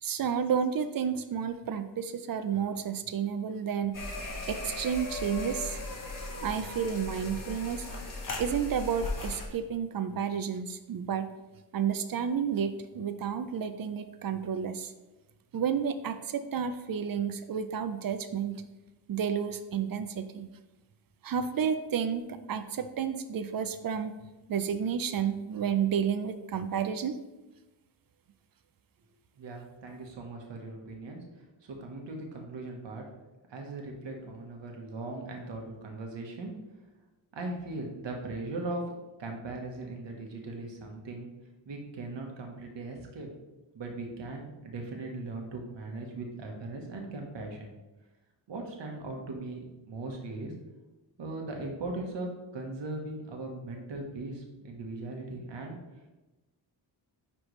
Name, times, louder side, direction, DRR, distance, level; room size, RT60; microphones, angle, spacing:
voice 1, 0.0-4.0 4.5-5.8 6.4-7.9 8.4-11.3 11.7-14.9 15.5-18.6 19.1-20.5 21.2-24.1 24.5-27.2, right 7 dB, 50° right, 10 dB, 0.5 m, -31 dB
sound 1, 3.9-9.5, left 2 dB, 45° left, 1.3 m, -37 dB
voice 2, 29.4-33.0 33.5-36.5 37.3-38.8 39.2-41.3 41.6-43.3 43.7-47.7 48.5-50.5 51.2-55.8, right 2 dB, 75° right, 1 dB, 1.3 m, -39 dB
10.0 x 3.4 x 3.1 m, 1.1 s
cardioid pair, 95°, 44 cm